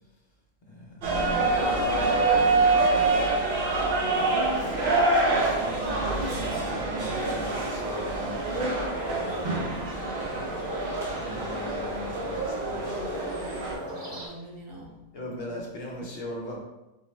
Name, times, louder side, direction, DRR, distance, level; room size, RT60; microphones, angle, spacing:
voice 1, 0.7-3.8 4.1-4.5 4.8-8.6 10.1-10.7 11.1-13.0 14.0-14.3 15.1-16.6, left 1 dB, 55° left, -2 dB, 0.8 m, -40 dB
sound 1, 1.0-13.7, right 3 dB, 55° right, 0.7 m, -26 dB
sound 2, 7.0-14.3, equal, 25° right, 0.8 m, -39 dB
voice 2, 8.4-10.2 13.6-15.0, right 1 dB, 80° right, -3 dB, 1.3 m, -39 dB
4.4 x 2.1 x 3.0 m, 0.98 s
omnidirectional pair, 1.4 m